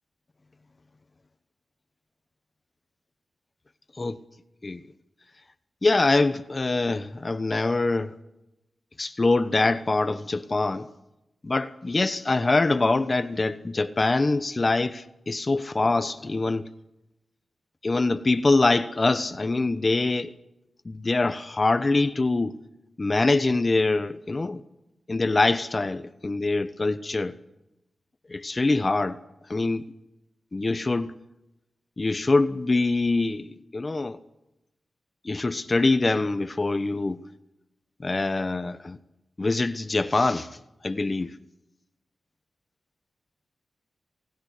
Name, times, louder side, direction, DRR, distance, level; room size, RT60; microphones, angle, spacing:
voice 1, 5.8-8.1 9.0-10.9 11.4-16.7 17.8-20.3 20.8-22.6 23.0-24.6 25.1-27.3 28.3-29.2 29.5-29.9 30.5-31.1 32.0-34.2 35.2-37.2 38.0-39.0 39.4-40.5 40.8-41.3, left 3 dB, 35° left, 1.1 m, -24 dB
28.0 x 19.5 x 6.6 m
cardioid pair, 60°, 0 cm